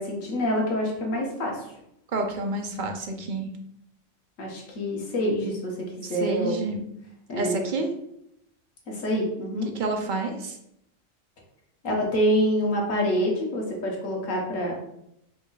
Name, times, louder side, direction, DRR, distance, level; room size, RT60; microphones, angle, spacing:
voice 1, 0.0-1.7 4.4-6.6 7.3-7.6 8.9-9.7 11.8-14.7, equal, 90° left, -2 dB, 1.6 m, -26 dB
voice 2, 2.1-3.5 6.0-6.8 7.4-7.9 9.7-10.6, right 2 dB, 50° right, 3 dB, 0.6 m, -29 dB
5.0 x 2.4 x 3.9 m, 0.79 s
omnidirectional pair, 1.3 m